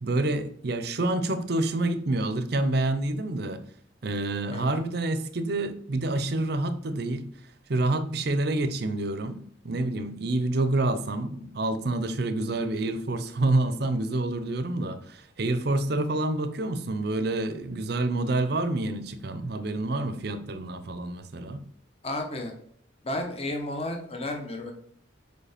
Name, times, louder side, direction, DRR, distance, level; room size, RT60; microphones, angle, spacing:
voice 1, 0.0-3.6 4.0-7.2 7.7-21.6, right 2 dB, 55° right, 0.6 m, -28 dB
voice 2, 4.5-4.8 22.0-22.5 23.0-24.7, left 1 dB, 30° left, 1.0 m, -32 dB
5.0 x 4.6 x 5.0 m
head